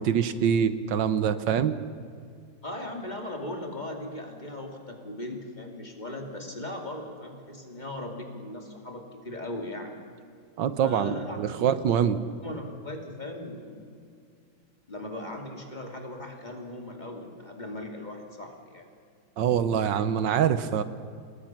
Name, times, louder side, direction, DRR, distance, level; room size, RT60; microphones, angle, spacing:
voice 1, 0.0-1.7 10.6-12.2 19.4-20.8, right 8 dB, 75° right, 12 dB, 1.5 m, -24 dB
voice 2, 2.6-10.2 10.8-11.8 12.4-14.0 14.9-18.9, left 1 dB, 25° left, 2 dB, 2.6 m, -38 dB
28.5 x 21.0 x 6.0 m, 2.3 s
omnidirectional pair, 2.0 m